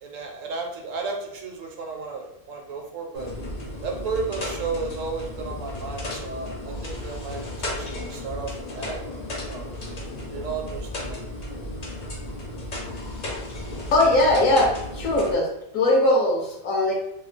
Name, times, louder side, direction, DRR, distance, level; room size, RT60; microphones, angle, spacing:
voice 1, 0.0-3.3 3.8-9.0 9.3-9.9 10.2-11.2, right 4 dB, 65° right, 2 dB, 0.9 m, -33 dB
sound 1, 3.1-15.3, left 1 dB, 50° left, 0.5 m, -34 dB
voice 2, 13.9-15.5 15.7-16.9, left 1 dB, 70° left, -1 dB, 0.9 m, -20 dB
2.9 x 2.2 x 3.1 m, 0.84 s
omnidirectional pair, 1.5 m